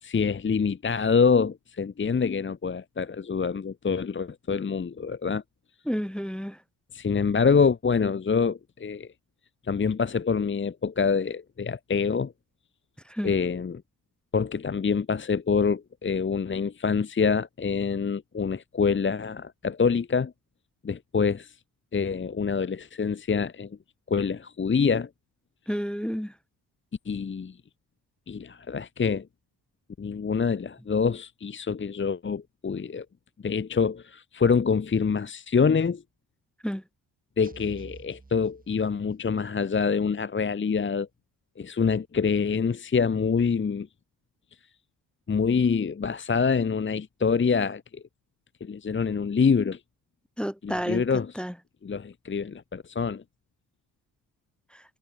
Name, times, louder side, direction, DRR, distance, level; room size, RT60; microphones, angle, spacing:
voice 1, 0.0-5.4 6.9-9.1 9.6-12.3 13.2-13.8 14.3-20.3 20.8-21.5 21.9-23.8 24.1-25.1 27.0-27.6 28.3-29.3 30.0-33.0 33.4-36.0 37.4-41.1 41.6-43.9 45.3-48.0 48.6-49.8 50.6-51.4 51.8-53.2, left 5 dB, 30° left, 1.1 m, -26 dB
voice 2, 5.9-6.6 13.1-13.3 25.7-26.3 36.6-36.8 50.4-51.0 51.4-51.5, equal, ahead, 0.6 m, -30 dB
sound 1, 37.4-39.3, right 3 dB, 20° right, 2.8 m, -49 dB
cardioid pair, 70°, 39 cm